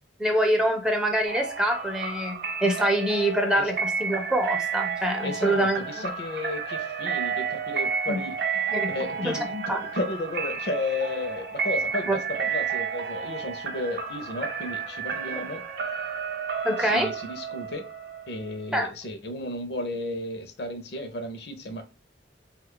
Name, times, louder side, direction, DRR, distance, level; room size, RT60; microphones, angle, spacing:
voice 1, 0.2-6.1 8.1-8.2 8.7-8.9 9.2-9.8 12.1-12.2 16.6-17.1 18.7-18.9, right 1 dB, 5° right, 3 dB, 0.4 m, -25 dB
sound 1, 1.3-18.9, right 6 dB, 60° right, 0.5 m, -31 dB
voice 2, 5.2-8.4 8.9-15.6 16.8-17.9 18.3-21.8, left 2 dB, 60° left, 8 dB, 0.5 m, -33 dB
3.1 x 2.3 x 3.6 m, 0.33 s
head